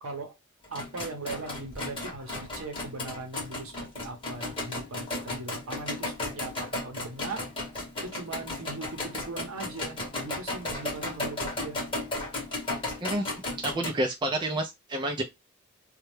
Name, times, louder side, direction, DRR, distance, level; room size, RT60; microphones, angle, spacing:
voice 1, 0.0-0.3 0.7-7.4 8.0-11.8, right 3 dB, 70° right, 0.7 m, -39 dB
sound 1, 0.6-13.9, left 2 dB, 25° left, 0.9 m, -35 dB
voice 2, 13.6-15.2, right 1 dB, 20° right, 0.3 m, -29 dB
2.2 x 2.0 x 3.0 m
head